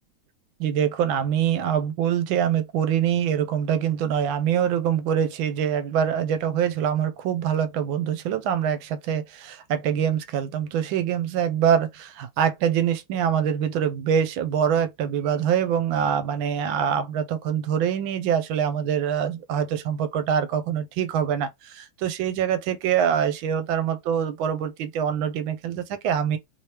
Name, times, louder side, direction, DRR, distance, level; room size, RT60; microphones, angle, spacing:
voice 1, 0.6-26.4, right 8 dB, 80° right, 1.3 m, -24 dB
3.4 x 3.2 x 2.8 m
omnidirectional pair, 2.3 m